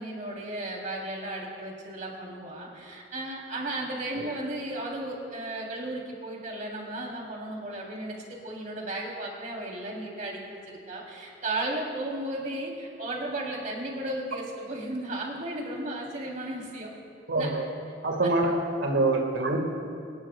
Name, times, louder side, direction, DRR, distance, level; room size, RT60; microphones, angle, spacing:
voice 1, 0.0-16.9 17.4-17.5 18.2-18.3, right 1 dB, 40° right, -2 dB, 3.4 m, -35 dB
voice 2, 17.3-17.6 18.0-19.6, right 2 dB, 85° right, 1 dB, 1.9 m, -25 dB
27.5 x 19.0 x 2.4 m, 2.5 s
head